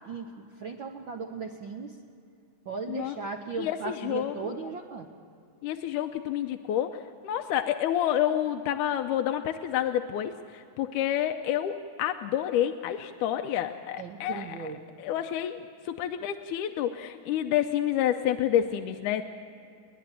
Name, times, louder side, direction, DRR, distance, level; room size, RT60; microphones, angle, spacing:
voice 1, 0.0-1.9 2.7-5.1 14.0-14.8, right 5 dB, 70° right, 4 dB, 1.1 m, -37 dB
voice 2, 3.6-4.3 5.6-14.7 15.0-15.6 15.9-19.2, left 11 dB, 85° left, 6 dB, 2.2 m, -29 dB
30.0 x 11.0 x 9.0 m, 2.6 s
omnidirectional pair, 3.6 m